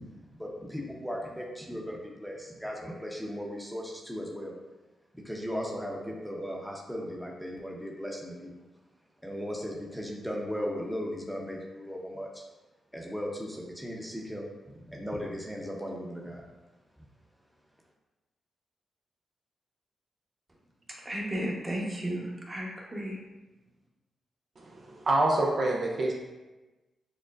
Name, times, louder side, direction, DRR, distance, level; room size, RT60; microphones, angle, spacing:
voice 1, 0.3-4.5 5.1-8.5 9.2-12.4 12.9-14.5 14.9-16.4, equal, ahead, -2 dB, 0.7 m, -37 dB
voice 2, 21.0-23.2, right 1 dB, 25° right, -3 dB, 1.1 m, -34 dB
voice 3, 24.6-26.1, right 2 dB, 55° right, -2 dB, 0.5 m, -27 dB
6.2 x 2.1 x 2.5 m, 1.1 s
cardioid pair, 60°, 0 cm